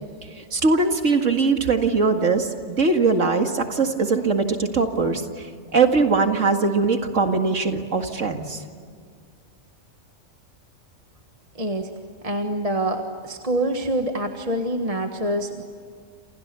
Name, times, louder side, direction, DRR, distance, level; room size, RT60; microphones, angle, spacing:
voice 1, 0.3-8.6, right 4 dB, 70° right, 5 dB, 2.3 m, -21 dB
voice 2, 11.5-11.9 12.2-15.7, right 1 dB, 30° right, 4 dB, 1.6 m, -26 dB
29.5 x 28.0 x 6.9 m, 2.1 s
omnidirectional pair, 1.4 m